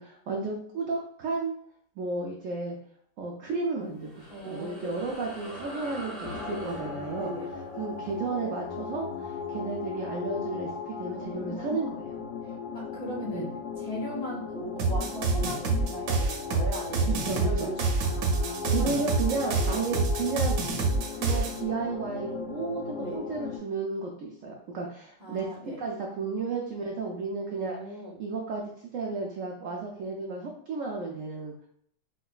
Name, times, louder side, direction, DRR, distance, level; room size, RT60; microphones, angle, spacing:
voice 1, 0.0-1.5 2.0-2.8 3.2-7.3 7.8-12.1 13.3-13.5 17.0-17.7 18.7-20.6 21.1-25.5 25.8-27.8 28.2-31.5, right 4 dB, 85° right, 0 dB, 0.6 m, -33 dB
sound 1, 3.8-10.6, equal, ahead, 0.7 m, -44 dB
voice 2, 4.3-5.1 7.1-7.5 11.1-11.8 12.7-13.5 13.8-20.0 23.0-23.2 25.2-25.8 27.5-28.2, right 1 dB, 50° left, -6 dB, 1.9 m, -38 dB
sound 2, 6.2-23.6, left 5 dB, 70° left, 0.9 m, -37 dB
sound 3, 14.8-21.6, right 3 dB, 70° right, 1.0 m, -27 dB
4.6 x 2.2 x 2.3 m, 0.65 s
omnidirectional pair, 1.9 m